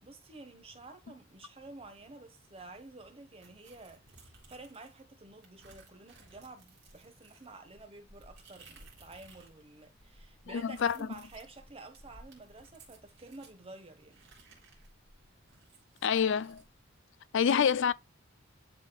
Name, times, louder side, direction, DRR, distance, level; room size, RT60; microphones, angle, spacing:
voice 1, 0.0-14.2, right 2 dB, 30° right, 1.5 m, -51 dB
sound 1, 3.4-5.0 5.4-9.6 9.9-13.6 14.1-16.7, right 2 dB, 60° right, 3.1 m, -58 dB
voice 2, 10.5-11.0 16.0-16.6 17.3-17.9, left 7 dB, 65° left, 0.4 m, -26 dB
10.5 x 4.4 x 2.4 m
head